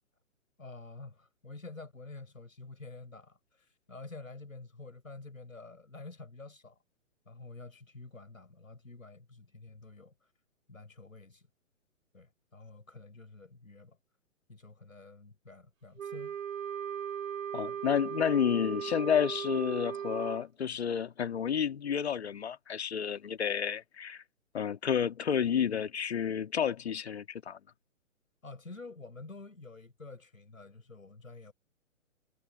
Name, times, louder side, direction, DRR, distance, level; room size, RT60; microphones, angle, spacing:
voice 1, 0.6-6.8 7.2-10.3 10.7-11.5 12.1-14.0 14.5-16.4 28.4-31.5, left 3 dB, 75° left, 6.5 m, -49 dB
Wind instrument woodwind instrument, 16.0-20.4, right 8 dB, 70° right, 0.8 m, -38 dB
voice 2, 17.5-24.2 24.5-27.6, left 8 dB, 50° left, 2.0 m, -30 dB
figure-of-eight pair, 130°, 41 cm